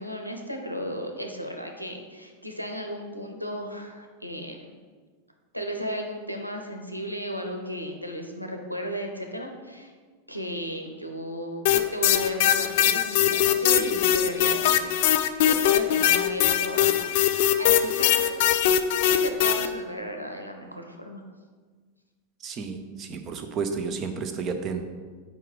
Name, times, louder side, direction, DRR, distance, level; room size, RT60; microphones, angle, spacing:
voice 1, 0.0-4.7 5.5-9.9 10.3-18.6 19.0-21.2, equal, 90° left, 3 dB, 0.7 m, -35 dB
sound 1, 11.7-19.7, left 10 dB, 50° left, 0.3 m, -21 dB
voice 2, 22.4-24.8, right 5 dB, 30° right, 6 dB, 0.6 m, -31 dB
4.7 x 4.5 x 4.8 m, 1.5 s
figure-of-eight pair, 90°, 0 cm